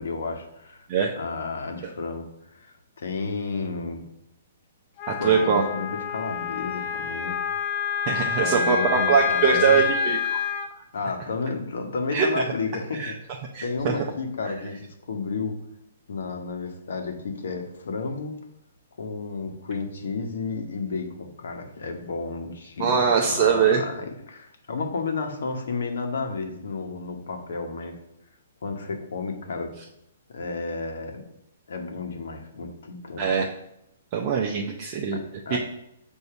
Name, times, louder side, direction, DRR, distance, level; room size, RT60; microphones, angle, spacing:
voice 1, 0.0-0.9 1.2-2.3 2.5-4.0 5.2-7.4 8.3-9.8 10.9-13.1 13.6-15.6 16.1-18.4 19.0-28.0 28.6-29.7 30.3-31.2 31.7-33.3 35.1-35.6, left 4 dB, 70° left, 4 dB, 1.1 m, -32 dB
Wind instrument woodwind instrument, 5.0-10.7, left 7 dB, 30° left, 0.6 m, -27 dB
voice 2, 5.1-5.6 8.1-10.4 12.1-12.4 12.9-13.1 13.5-13.9 22.8-23.8 33.2-33.5 34.1-35.2 35.5-35.6, right 6 dB, 30° right, -1 dB, 0.6 m, -22 dB
6.6 x 2.7 x 5.7 m, 0.81 s
hypercardioid pair, 165°, 0 cm